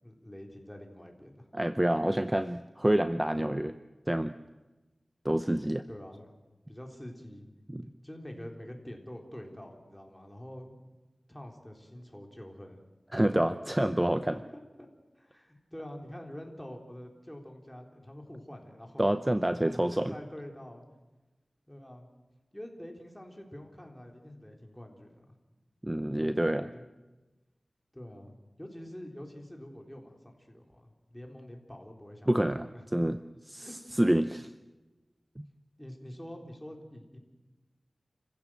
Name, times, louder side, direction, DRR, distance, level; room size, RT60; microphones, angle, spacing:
voice 1, 0.0-1.5 5.9-6.3 6.7-7.5 7.8-10.8 11.3-12.8 13.1-13.4 14.3-14.9 15.2-19.1 19.6-20.8 21.7-22.1 22.5-25.3 26.2-26.3 26.7-26.9 27.9-28.3 28.6-33.1 33.6-34.1 35.8-37.2, equal, 10° left, 2 dB, 4.0 m, -46 dB
voice 2, 1.5-3.8 4.1-4.4 5.2-5.8 7.7-7.9 13.1-14.4 19.0-20.1 25.8-26.7 32.3-33.2 33.5-33.7 34.0-34.3 35.4-35.5, right 1 dB, 15° right, 11 dB, 0.7 m, -27 dB
29.0 x 15.5 x 7.7 m, 1.1 s
wide cardioid pair, 60°, 0 cm